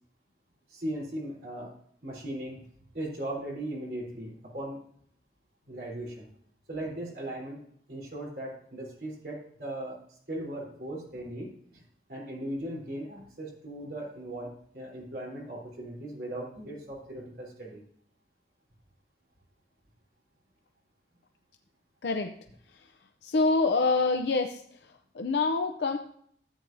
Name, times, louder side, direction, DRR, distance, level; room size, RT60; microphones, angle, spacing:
voice 1, 0.7-1.7 2.0-2.6 2.9-4.8 5.7-6.3 6.7-7.6 7.9-11.8 12.1-17.8, right 1 dB, 60° right, -3 dB, 3.6 m, -38 dB
voice 2, 22.0-22.3 22.7-22.8 23.2-24.6 25.1-26.0, left 3 dB, 75° left, 5 dB, 0.6 m, -26 dB
13.5 x 8.5 x 2.6 m, 0.64 s
head